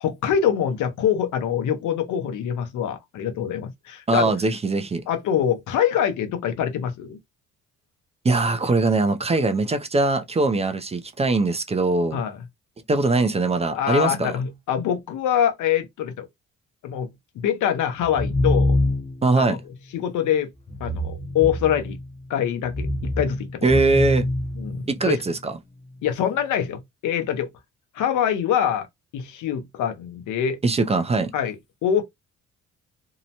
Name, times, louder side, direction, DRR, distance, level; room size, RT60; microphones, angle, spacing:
voice 1, 0.0-4.3 5.1-7.2 12.1-12.4 13.7-16.3 16.8-17.1 17.4-18.8 19.3-19.6 19.9-20.5 20.8-22.0 22.3-22.9 23.2-23.6 24.6-25.2 26.0-27.5 27.9-28.9 29.1-30.6 31.3-31.6 31.8-32.0, left 9 dB, 80° left, 0.7 m, -24 dB
voice 2, 4.1-5.0 8.2-12.2 12.9-14.3 19.2-19.6 23.6-24.3 24.9-25.6 30.6-31.3, right 3 dB, 20° right, 0.4 m, -21 dB
sound 1, 18.0-19.3 20.7-22.1 22.6-25.1, left 1 dB, 20° left, 0.6 m, -25 dB
2.7 x 2.1 x 2.7 m
cardioid pair, 90°, 30 cm